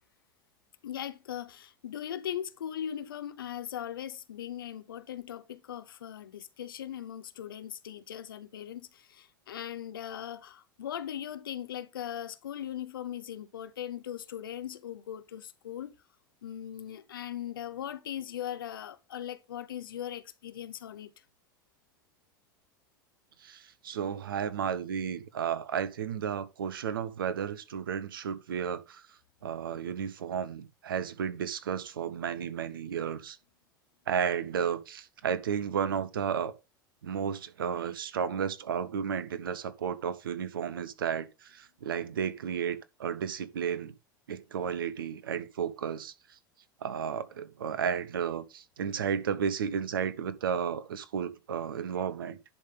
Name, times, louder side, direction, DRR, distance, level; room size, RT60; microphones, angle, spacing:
voice 1, 0.8-15.9 16.4-21.1, left 10 dB, 80° left, 0.7 m, -39 dB
voice 2, 23.4-29.0 29.4-33.4 34.1-36.5 37.0-43.9 44.3-46.1 46.8-52.4, right 7 dB, 80° right, 0.9 m, -33 dB
10.5 x 3.6 x 5.4 m
hypercardioid pair, 85°, 11 cm